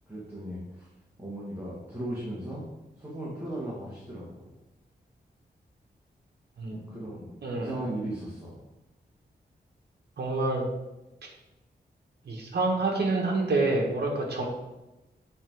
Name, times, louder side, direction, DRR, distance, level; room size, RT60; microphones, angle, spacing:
voice 1, 0.1-0.9 1.2-2.7 3.0-4.5 6.7-8.6, right 1 dB, 15° right, -7 dB, 1.9 m, -37 dB
voice 2, 7.4-7.7 10.2-10.7 12.2-14.4, right 2 dB, 70° right, -1 dB, 1.4 m, -27 dB
8.3 x 3.8 x 4.7 m, 0.99 s
wide cardioid pair, 125°, 18 cm